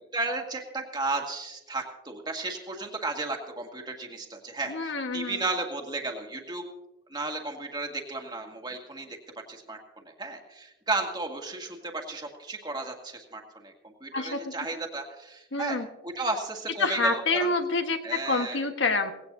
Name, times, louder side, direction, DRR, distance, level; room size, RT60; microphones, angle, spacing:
voice 1, 0.1-6.6 7.1-9.2 9.5-9.8 10.0-15.8 16.0-17.5 18.0-18.7, right 3 dB, 20° right, 2 dB, 1.9 m, -34 dB
voice 2, 4.7-5.4 14.1-14.6 15.5-15.9 16.8-19.1, left 3 dB, 75° left, 6 dB, 1.5 m, -27 dB
18.5 x 17.0 x 2.7 m, 0.97 s
head